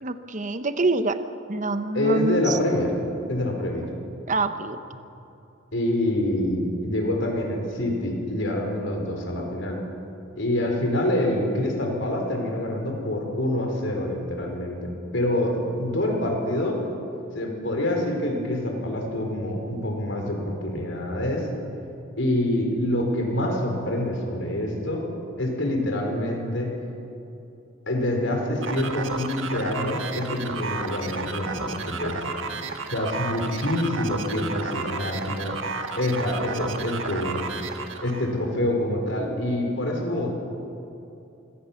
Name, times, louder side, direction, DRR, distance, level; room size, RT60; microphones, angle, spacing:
voice 1, 0.0-1.2 1.5-2.6 4.3-4.8, right 3 dB, 40° right, 10 dB, 0.8 m, -26 dB
voice 2, 1.9-2.9 3.3-3.9 5.7-9.8 10.4-16.8 17.3-21.5 22.2-25.0 25.4-26.7 27.9-32.2 32.9-35.5 36.0-37.5 38.0-40.3, left 1 dB, 65° left, 2 dB, 4.3 m, -26 dB
sound 1, 28.6-38.4, right 4 dB, 70° right, 1.7 m, -32 dB
25.0 x 17.5 x 7.1 m, 2.8 s
head